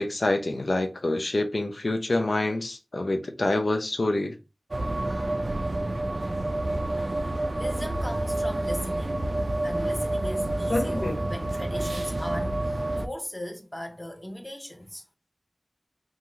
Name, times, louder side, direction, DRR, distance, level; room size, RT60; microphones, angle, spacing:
voice 1, 0.0-4.3 10.7-11.2, left 2 dB, 75° left, 0.5 m, -26 dB
sound 1, 4.7-13.1, right 1 dB, 60° right, 0.3 m, -28 dB
voice 2, 7.5-9.3 9.6-15.0, equal, 15° left, 0.8 m, -38 dB
2.6 x 2.4 x 3.0 m
wide cardioid pair, 45°, 0 cm